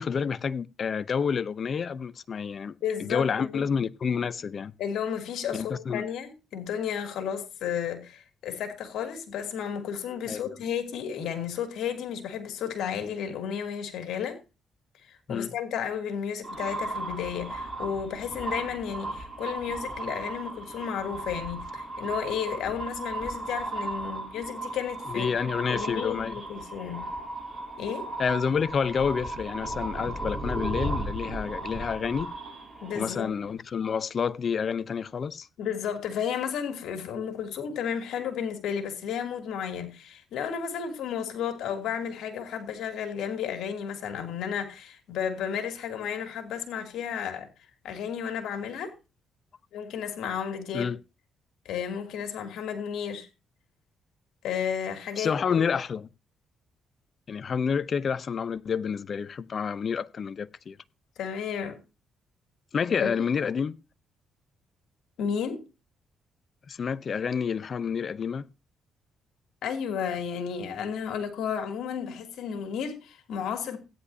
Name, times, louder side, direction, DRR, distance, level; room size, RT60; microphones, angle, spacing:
voice 1, 0.0-2.7 3.0-4.7 5.5-6.0 10.3-10.4 15.3-15.5 25.1-26.4 28.2-32.3 33.0-35.5 50.7-51.0 55.2-56.1 57.3-60.8 62.7-63.8 66.7-68.5, left 6 dB, 50° left, 0.7 m, -29 dB
voice 2, 2.8-3.6 4.8-14.4 15.1-25.3 25.7-27.1 27.8-28.1 32.8-33.3 35.6-47.5 47.8-48.9 49.7-50.9 51.6-53.3 54.4-55.3 61.2-61.8 63.0-63.1 65.2-65.6 69.6-73.8, left 8 dB, 80° left, 2.8 m, -33 dB
sound 1, 16.4-33.5, right 2 dB, 15° right, 7.6 m, -36 dB
16.5 x 10.0 x 2.8 m
cardioid pair, 90°, 0 cm